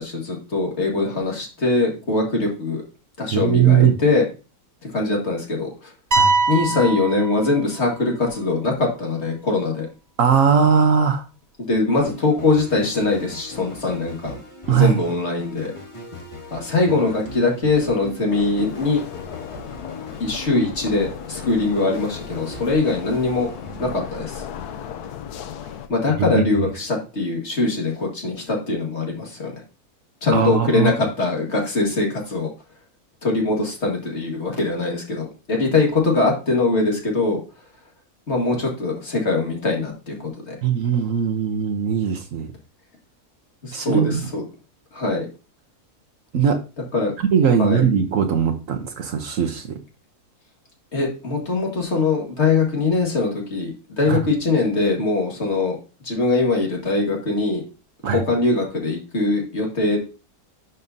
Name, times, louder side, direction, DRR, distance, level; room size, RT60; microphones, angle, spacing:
voice 1, 0.0-2.8 3.2-4.2 4.9-5.9 6.5-9.9 11.6-14.4 14.8-15.7 16.5-19.0 20.2-23.5 23.8-24.4 25.9-29.5 30.2-32.5 33.2-37.4 38.3-40.6 43.6-44.4 44.9-45.3 46.9-47.1 47.6-47.9 50.9-55.8 56.0-57.6 58.1-60.0, left 3 dB, 45° left, 0 dB, 2.1 m, -22 dB
voice 2, 3.3-4.0 6.1-6.3 10.2-11.2 14.7-15.0 26.2-26.4 30.3-30.9 40.6-42.5 43.7-44.2 46.3-46.6 47.2-49.8 54.1-54.2 58.0-58.2, right 7 dB, 60° right, 7 dB, 1.2 m, -19 dB
sound 1, 6.1-8.0, right 3 dB, 40° right, 0.6 m, -22 dB
sound 2, 12.0-24.9, left 2 dB, 20° left, 1.9 m, -39 dB
sound 3, 18.3-25.9, left 8 dB, 80° left, 1.2 m, -36 dB
11.0 x 5.3 x 2.7 m, 0.33 s
omnidirectional pair, 1.6 m